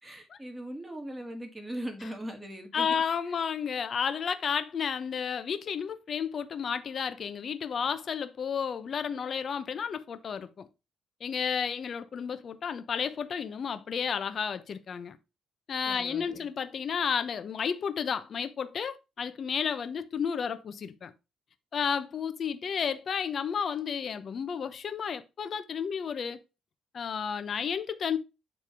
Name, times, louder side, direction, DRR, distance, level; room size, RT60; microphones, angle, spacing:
voice 1, 0.0-3.0 3.3-3.4 15.9-16.5, right 1 dB, 15° right, 2.0 m, -40 dB
voice 2, 2.7-10.7 11.2-15.2 15.7-21.1 21.7-26.4 26.9-28.2, left 7 dB, 50° left, 0.8 m, -32 dB
9.4 x 3.5 x 4.7 m
cardioid pair, 105°, 0 cm